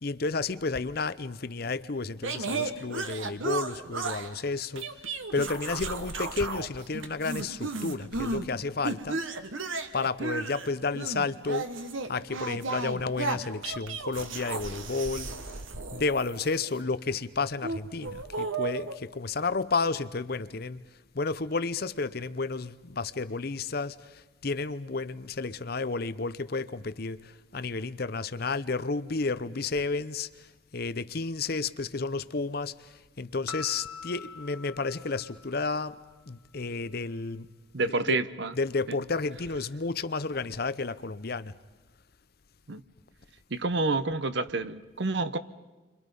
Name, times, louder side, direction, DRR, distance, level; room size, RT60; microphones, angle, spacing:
voice 1, 0.0-4.9 5.3-9.2 9.9-11.7 12.1-15.3 15.9-20.8 21.1-36.0 36.3-37.5 37.8-38.2 38.5-41.5, left 3 dB, 50° left, 0.7 m, -31 dB
sound 1, 2.2-4.3 4.8-6.7 6.9-8.5 8.8-16.8 17.6-18.9, right 3 dB, 80° right, 1.5 m, -34 dB
Piano, 33.5-36.0, left 5 dB, 5° left, 3.5 m, -44 dB
voice 2, 37.7-38.5 38.9-39.0 42.7-42.8 43.5-45.4, right 3 dB, 60° right, 0.9 m, -28 dB
30.0 x 25.5 x 5.4 m
head